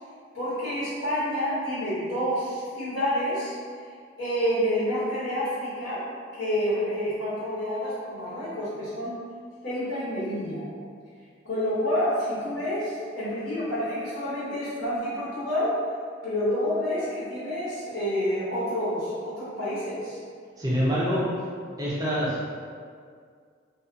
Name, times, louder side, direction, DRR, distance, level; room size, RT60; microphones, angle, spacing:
voice 1, 0.3-3.5 4.2-6.1 6.3-9.2 9.6-10.7 11.4-15.8 16.2-20.2, equal, 65° left, -13 dB, 1.0 m, -28 dB
voice 2, 20.6-21.3 21.8-22.4, equal, 20° right, -8 dB, 0.5 m, -25 dB
2.4 x 2.3 x 2.5 m, 2.1 s
head